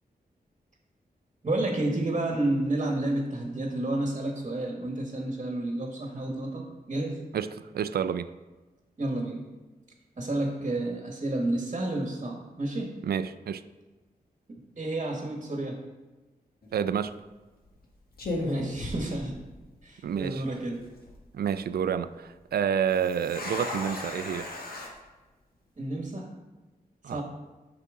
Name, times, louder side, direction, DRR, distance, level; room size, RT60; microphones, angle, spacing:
voice 1, 1.4-7.2 9.0-9.4 10.2-13.0 14.5-15.8 18.4-19.4 19.8-20.8 25.8-26.3 27.1-27.2, right 2 dB, 40° right, 1 dB, 1.3 m, -30 dB
voice 2, 7.3-8.3 13.0-13.6 16.7-17.1 20.0-20.4 21.3-24.5 27.0-27.2, right 8 dB, 75° right, 13 dB, 0.4 m, -29 dB
sound 1, 16.6-16.9 17.7-17.8 18.2-19.8 20.0-20.1 20.8-21.1 22.9-24.9, left 2 dB, 70° left, 1.5 m, -36 dB
8.2 x 5.9 x 3.6 m, 1.2 s
cardioid pair, 65°, 16 cm